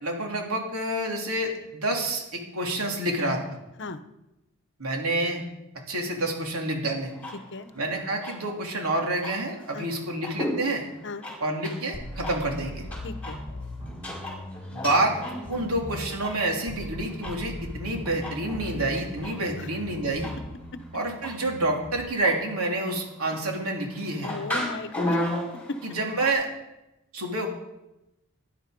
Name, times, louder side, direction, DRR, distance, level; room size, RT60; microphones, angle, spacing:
voice 1, 0.0-3.6 4.8-5.4 5.9-7.1 7.7-10.8 11.4-12.9 14.7-15.2 15.5-20.3 20.9-24.3 25.8-26.5 27.1-27.5, right 2 dB, 90° right, 0 dB, 3.4 m, -28 dB
sound 1, 7.1-26.3, left 1 dB, 5° left, 5.4 m, -37 dB
sound 2, 11.9-17.0 17.2-22.0, left 1 dB, 30° right, 6.6 m, -39 dB
voice 2, 13.0-13.4 19.6-19.7 24.2-25.2 25.7-25.8, left 3 dB, 55° left, 11 dB, 1.0 m, -35 dB
18.0 x 11.0 x 5.3 m, 0.93 s
head